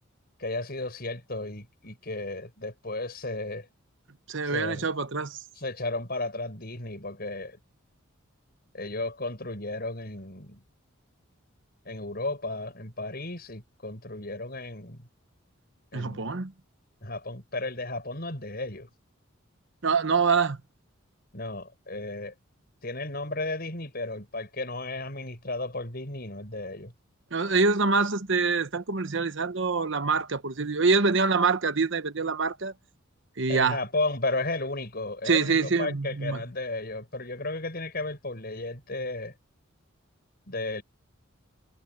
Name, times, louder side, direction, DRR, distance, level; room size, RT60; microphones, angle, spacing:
voice 1, 0.4-3.7 4.5-4.8 5.6-7.6 8.7-10.6 11.8-15.1 15.9-16.2 17.0-18.9 21.3-22.3 22.8-26.9 33.5-39.3 40.5-40.8, left 2 dB, 45° left, 6.9 m, -34 dB
voice 2, 4.3-5.4 15.9-16.5 19.8-20.6 27.3-32.7 33.4-33.8 35.2-36.4, right 4 dB, 60° right, 1.1 m, -25 dB
head